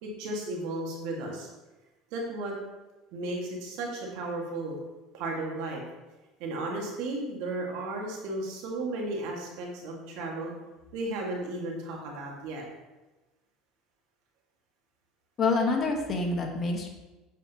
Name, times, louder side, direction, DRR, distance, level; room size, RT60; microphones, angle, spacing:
voice 1, 0.0-1.5 2.1-2.5 3.1-4.8 5.1-5.8 6.4-10.5 10.9-12.6, right 2 dB, 70° right, -1 dB, 2.0 m, -34 dB
voice 2, 15.4-16.9, left 3 dB, 35° left, 2 dB, 1.5 m, -27 dB
7.7 x 6.0 x 3.0 m, 1.1 s
supercardioid pair, 95°, 0 cm